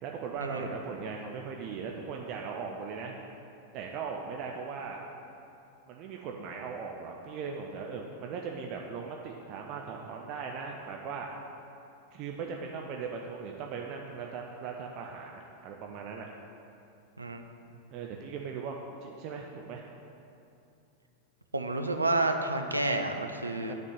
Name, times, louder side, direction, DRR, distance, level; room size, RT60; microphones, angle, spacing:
voice 1, 0.0-3.1 3.7-5.0 5.9-11.3 12.1-16.3 17.9-19.9 23.7-23.8, right 5 dB, 40° right, 1 dB, 0.6 m, -39 dB
voice 2, 21.5-23.7, right 2 dB, 80° right, 5 dB, 0.6 m, -30 dB
10.0 x 4.3 x 6.6 m, 2.7 s
figure-of-eight pair, 90°, 0 cm